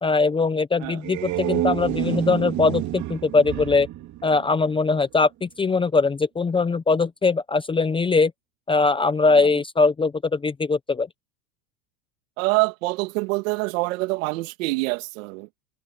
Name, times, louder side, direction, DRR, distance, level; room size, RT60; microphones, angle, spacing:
voice 1, 0.0-3.9 4.2-8.3 8.7-11.1, left 4 dB, 10° left, 0.8 m, -21 dB
sound 1, 0.8-5.1, right 14 dB, 40° right, 2.9 m, -29 dB
voice 2, 12.4-15.5, right 24 dB, 65° right, 2.6 m, -25 dB
supercardioid pair, 130°, 43 cm